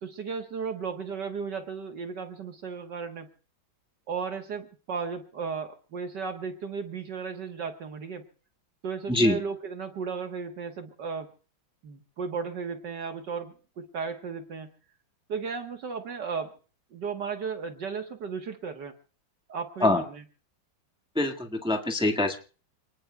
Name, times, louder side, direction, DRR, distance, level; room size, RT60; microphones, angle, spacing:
voice 1, 0.0-3.3 4.1-8.2 8.8-11.3 11.8-14.7 15.3-16.6 16.9-19.0 19.5-20.2, right 5 dB, 65° right, 6 dB, 1.9 m, -35 dB
voice 2, 9.1-9.4 19.8-20.0 21.1-22.4, left 2 dB, 5° right, 3 dB, 1.4 m, -24 dB
29.0 x 19.5 x 2.3 m, 0.38 s
omnidirectional pair, 2.1 m